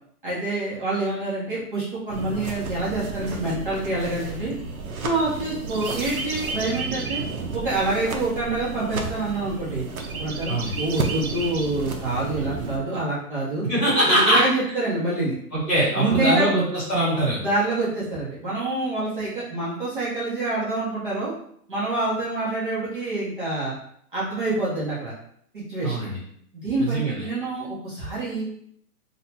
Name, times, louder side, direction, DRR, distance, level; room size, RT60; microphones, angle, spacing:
voice 1, 0.2-4.5 5.0-7.2 7.5-9.8 10.1-13.6 14.0-15.3 15.9-16.5 17.4-21.3 21.7-23.7 24.1-25.1 25.5-26.1 26.5-28.5, right 2 dB, 35° right, -8 dB, 0.8 m, -26 dB
sound 1, 2.1-12.8, right 4 dB, 65° right, 0.7 m, -32 dB
voice 2, 10.5-10.8 13.7-14.4 15.5-17.4 25.8-26.2 26.8-27.2, right 1 dB, 5° left, -12 dB, 1.1 m, -22 dB
2.7 x 2.2 x 4.1 m, 0.67 s
hypercardioid pair, 175°, 45 cm